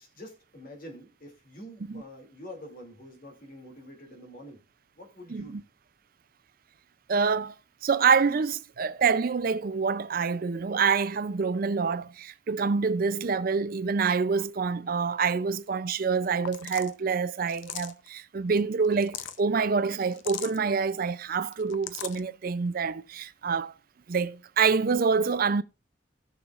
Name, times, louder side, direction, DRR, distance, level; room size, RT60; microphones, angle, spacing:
voice 1, 0.0-4.6 5.0-5.6, equal, 45° left, 2.6 m, -46 dB
voice 2, 5.3-5.6 7.1-7.5 7.8-23.7 24.1-25.6, right 5 dB, 45° right, 0.4 m, -26 dB
sound 1, 16.1-16.2 16.4-16.9 17.5-18.1 18.8-19.4 20.1-20.6 21.5-22.2, left 9 dB, 70° left, 0.7 m, -39 dB
17.5 x 6.3 x 2.4 m
head